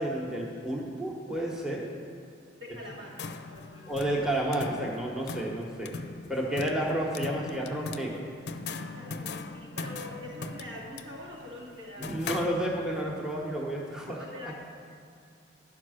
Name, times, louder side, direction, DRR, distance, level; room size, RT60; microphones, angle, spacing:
voice 1, 0.0-1.9 3.9-5.9 6.3-8.3 12.0-14.2, right 1 dB, 5° right, -3 dB, 1.0 m, -31 dB
voice 2, 2.6-3.2 3.5-3.8 8.9-12.4 14.2-14.5, left 1 dB, 80° right, -5 dB, 2.2 m, -44 dB
sound 1, 2.9-13.1, left 4 dB, 60° left, 0.5 m, -40 dB
11.0 x 4.8 x 6.4 m, 2.3 s
head